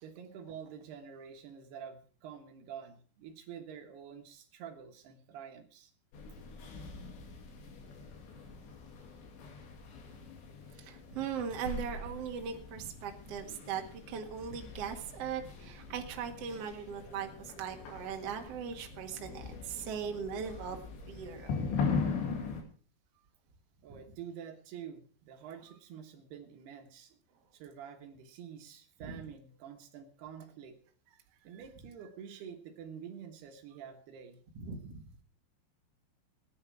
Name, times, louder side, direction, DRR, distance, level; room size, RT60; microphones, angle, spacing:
voice 1, 0.0-5.9 23.8-27.2 27.5-30.8 31.4-34.4, right 8 dB, 70° right, 5 dB, 3.2 m, -48 dB
sound 1, 6.1-22.6, left 5 dB, 80° left, 4.8 m, -41 dB
voice 2, 10.8-13.8 14.1-20.8 21.1-21.5 29.0-29.2 34.6-35.0, right 7 dB, 50° right, 3 dB, 2.1 m, -39 dB
19.0 x 10.5 x 4.7 m, 0.41 s
omnidirectional pair, 5.1 m